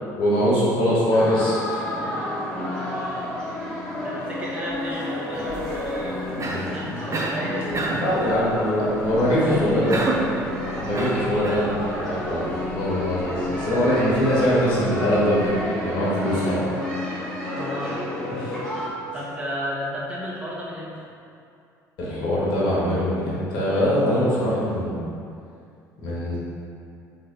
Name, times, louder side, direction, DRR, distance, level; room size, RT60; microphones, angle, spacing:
voice 1, 0.2-1.8 8.0-10.0 10.8-12.5 12.7-16.6 18.4-18.5 22.0-25.0 26.0-26.4, equal, 60° left, -8 dB, 1.3 m, -22 dB
sound 1, 1.1-18.9, left 1 dB, 5° left, 1.3 m, -31 dB
voice 2, 2.7-3.3 3.9-8.7 9.3-10.4 11.5-11.8 17.5-18.1 19.1-21.0, equal, 15° right, -7 dB, 1.2 m, -33 dB
sound 2, 4.6-15.4, right 3 dB, 60° right, 1.1 m, -41 dB
Cough, 6.4-6.7 7.1-7.4 7.7-8.1 9.9-10.3 10.9-11.7, right 2 dB, 30° right, 0.7 m, -27 dB
3.8 x 3.1 x 4.2 m, 2.4 s
hypercardioid pair, 60°, 10 cm